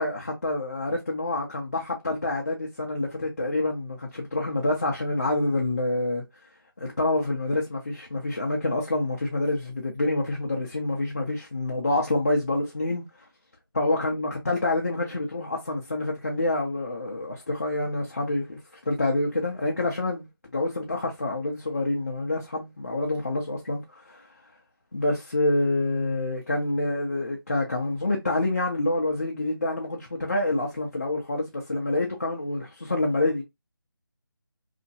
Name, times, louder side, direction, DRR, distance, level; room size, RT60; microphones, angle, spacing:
voice 1, 0.0-6.2 6.8-13.0 13.7-18.6 18.9-20.3 20.5-24.3 24.9-33.4, left 2 dB, 35° left, 0.6 m, -27 dB
2.8 x 2.6 x 2.6 m
figure-of-eight pair, 175°, 13 cm